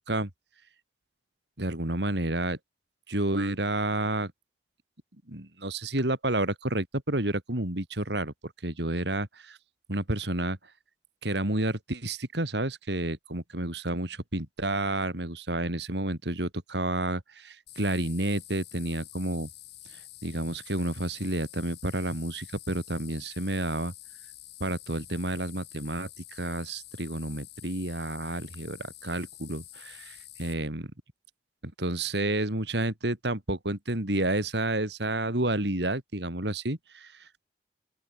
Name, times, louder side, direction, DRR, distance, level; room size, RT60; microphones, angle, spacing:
voice 1, 1.6-2.6 3.1-4.3 5.3-9.6 9.9-10.6 11.2-19.5 19.9-23.9 24.6-30.9 31.6-37.3, right 1 dB, 70° right, 3.4 m, -30 dB
cicadas loud, 17.7-30.5, left 15 dB, 65° left, 5.4 m, -48 dB
open air
head